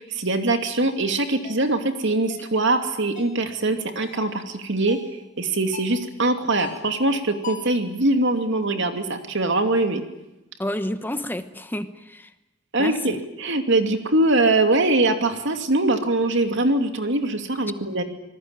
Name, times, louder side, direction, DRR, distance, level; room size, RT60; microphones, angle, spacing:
voice 1, 0.0-5.0 5.4-10.0 12.7-18.0, right 2 dB, 65° right, 6 dB, 2.7 m, -22 dB
sound 1, 1.4-1.6 2.3-2.6 3.2-3.4 4.0-4.3 4.9-5.2 5.7-6.0 6.6-6.9 7.4-7.8, left 6 dB, 40° left, 5.2 m, -40 dB
voice 2, 10.6-12.3 12.8-13.2, left 1 dB, 10° left, 10 dB, 1.0 m, -30 dB
26.5 x 20.0 x 9.1 m, 0.96 s
head